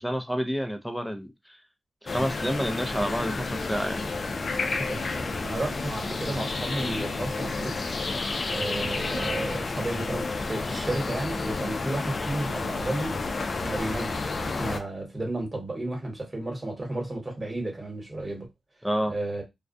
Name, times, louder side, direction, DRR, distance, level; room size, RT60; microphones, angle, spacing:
voice 1, 0.0-1.6 2.0-4.0 18.8-19.2, equal, ahead, 0.5 m, -29 dB
sound 1, 2.1-14.8, left 3 dB, 55° left, 0.4 m, -31 dB
voice 2, 4.7-7.9 8.5-13.2 13.6-18.5 19.1-19.4, right 1 dB, 25° right, 1.2 m, -33 dB
2.3 x 2.1 x 2.5 m
cardioid pair, 75°, 0 cm